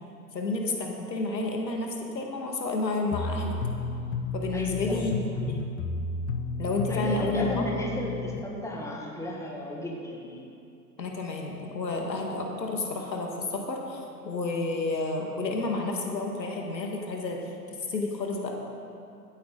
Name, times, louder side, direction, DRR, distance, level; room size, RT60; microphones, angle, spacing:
voice 1, 0.3-3.6 4.3-5.2 5.5-5.6 6.6-7.6 11.0-17.5 17.9-18.5, left 3 dB, 90° left, 1 dB, 1.8 m, -30 dB
sound 1, 3.1-8.4, left 3 dB, 25° left, 0.7 m, -32 dB
voice 2, 4.5-5.2 6.9-10.5, left 1 dB, 5° left, -2 dB, 1.8 m, -35 dB
16.0 x 8.6 x 3.9 m, 2.6 s
hypercardioid pair, 105°, 49 cm